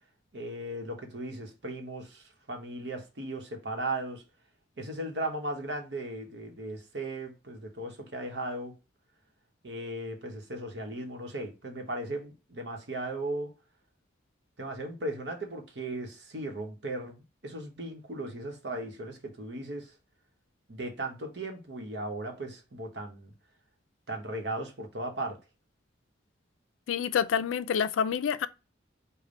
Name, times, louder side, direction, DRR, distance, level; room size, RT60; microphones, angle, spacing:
voice 1, 0.3-4.2 4.8-8.8 9.6-13.6 14.6-19.9 20.7-23.3 24.1-25.4, right 1 dB, 60° right, 0.9 m, -37 dB
voice 2, 26.9-28.5, left 7 dB, 90° left, 0.4 m, -27 dB
5.1 x 2.2 x 3.9 m
head